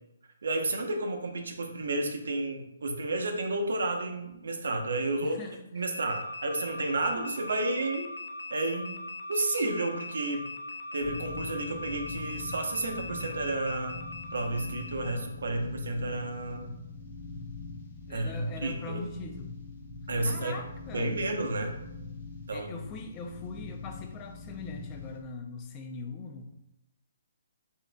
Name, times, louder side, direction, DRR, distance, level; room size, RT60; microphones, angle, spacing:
voice 1, 0.4-5.4 5.7-8.1 8.5-9.0 9.3-10.5 10.9-14.0 14.3-16.7 18.1-19.0 20.1-20.6 20.9-21.7 22.5-22.7, right 2 dB, 80° right, 3 dB, 0.8 m, -31 dB
voice 2, 5.2-5.6 18.1-19.6 20.2-21.1 22.5-26.5, left 4 dB, 20° left, 4 dB, 0.5 m, -41 dB
sound 1, 5.9-15.2, left 2 dB, 90° left, 0.5 m, -41 dB
sound 2, 11.0-25.2, left 4 dB, 45° left, 1.0 m, -43 dB
7.3 x 2.6 x 2.3 m, 0.86 s
hypercardioid pair, 160°, 0 cm